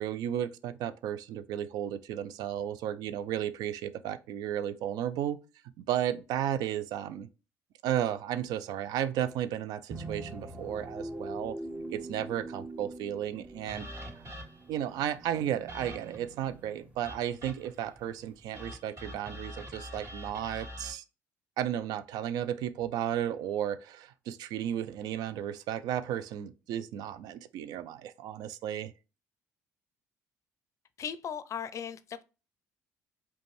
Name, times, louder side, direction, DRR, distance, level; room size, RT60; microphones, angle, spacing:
voice 1, 0.0-5.4 5.9-7.3 7.8-11.6 11.9-13.8 14.2-14.3 14.7-21.0 21.6-28.9, right 10 dB, 75° right, 0.3 m, -34 dB
sound 1, 9.9-18.7, right 2 dB, 20° right, 0.6 m, -44 dB
sound 2, 13.7-14.8 15.7-16.3 17.0-17.8 18.5-20.9, equal, 50° right, 2.1 m, -44 dB
voice 2, 31.0-32.2, left 8 dB, 50° left, 0.4 m, -37 dB
5.0 x 2.3 x 3.1 m
supercardioid pair, 75°, 7 cm